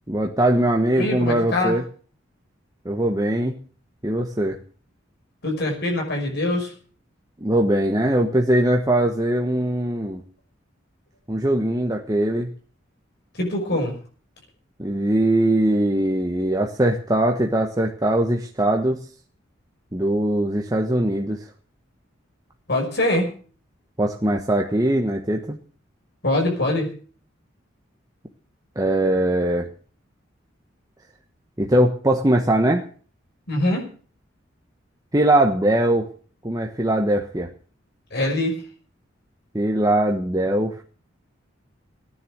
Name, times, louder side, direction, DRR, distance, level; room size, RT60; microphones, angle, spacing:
voice 1, 0.1-1.8 2.8-3.6 4.0-4.6 7.4-10.2 11.3-12.5 14.8-19.0 19.9-21.5 24.0-25.6 28.7-29.7 31.6-32.9 35.1-36.1 36.4-37.5 39.5-40.8, right 1 dB, 20° right, 1 dB, 1.3 m, -21 dB
voice 2, 1.0-1.8 5.4-6.7 13.3-13.9 22.7-23.3 26.2-26.9 33.5-33.9 38.1-38.5, left 1 dB, 60° left, 1 dB, 5.7 m, -23 dB
16.0 x 10.0 x 7.7 m, 0.42 s
head